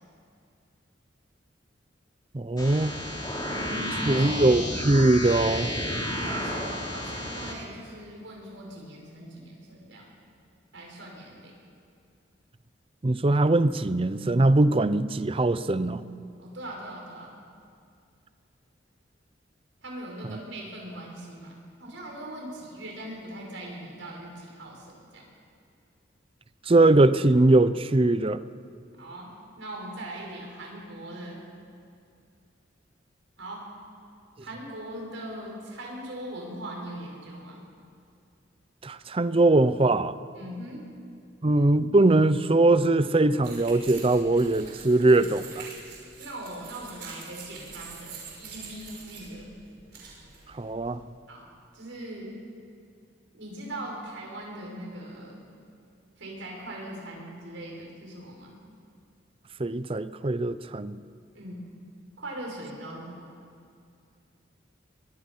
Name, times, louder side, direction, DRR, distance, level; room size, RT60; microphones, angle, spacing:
voice 1, 2.3-2.9 4.0-5.7 13.0-16.0 20.2-20.4 26.7-28.4 38.8-40.2 41.4-45.7 50.5-51.0 59.6-61.0, right 2 dB, 30° right, 14 dB, 0.6 m, -21 dB
sound 1, 2.6-7.5, left 1 dB, 20° left, 3.2 m, -32 dB
voice 2, 3.5-4.5 6.2-10.1 10.7-11.5 16.4-17.3 19.8-21.5 21.8-25.3 29.0-31.4 33.4-33.7 34.4-37.6 40.3-40.9 46.2-49.5 51.3-52.4 53.3-55.4 56.2-58.6 61.3-61.7 62.2-63.3, right 1 dB, 90° right, -2 dB, 5.9 m, -40 dB
sound 2, 43.4-51.0, right 5 dB, 60° right, 5.7 m, -45 dB
23.5 x 23.0 x 5.6 m, 2.4 s
head